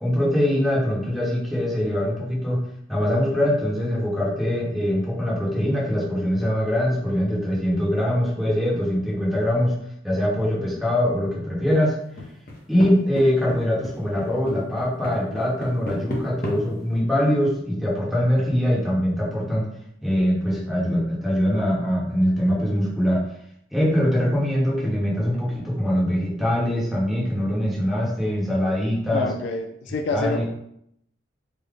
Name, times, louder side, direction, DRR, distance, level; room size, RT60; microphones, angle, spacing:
voice 1, 0.0-2.6 2.9-9.7 10.0-12.0 12.7-19.7 20.0-23.2 23.7-29.3 30.1-30.4, equal, ahead, -6 dB, 0.9 m, -23 dB
sound 1, 12.2-12.9 13.2-13.6 13.8-16.6, left 1 dB, 50° left, 0.7 m, -31 dB
voice 2, 29.1-30.4, left 3 dB, 65° left, 6 dB, 0.3 m, -27 dB
3.8 x 2.0 x 3.3 m, 0.73 s
head